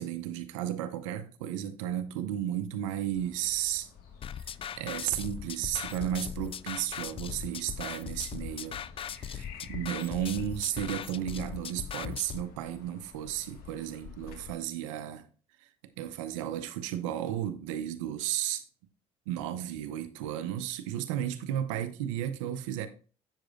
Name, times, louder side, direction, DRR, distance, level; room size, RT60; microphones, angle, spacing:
voice 1, 0.0-3.9 4.8-15.3 15.6-15.7 16.0-18.7 19.3-22.9, right 11 dB, 85° right, 0.8 m, -34 dB
sound 1, 3.1-14.5, left 7 dB, 70° left, 1.7 m, -50 dB
sound 2, 4.2-12.4, left 9 dB, 35° left, 0.4 m, -39 dB
7.4 x 7.4 x 2.5 m
hypercardioid pair, 70°, 16 cm